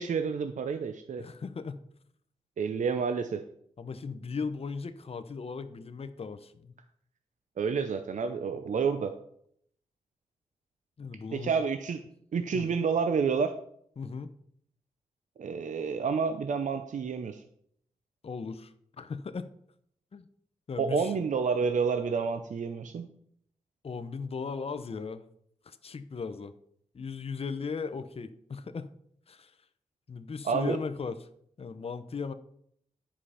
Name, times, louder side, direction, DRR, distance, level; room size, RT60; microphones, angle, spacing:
voice 1, 0.0-1.2 2.6-3.4 7.6-9.1 11.3-12.0 12.3-13.5 15.4-17.4 20.8-23.1 30.4-30.8, right 5 dB, 70° right, 8 dB, 0.6 m, -29 dB
voice 2, 1.2-1.8 3.8-6.7 11.0-11.6 12.5-12.7 14.0-14.3 18.2-19.5 20.1-20.3 20.7-21.2 23.8-25.2 25.7-26.5 26.9-28.9 29.3-29.5 30.1-31.3 31.6-32.3, left 5 dB, 50° left, 10 dB, 0.7 m, -37 dB
10.0 x 5.0 x 5.6 m, 0.68 s
cardioid pair, 65°, 13 cm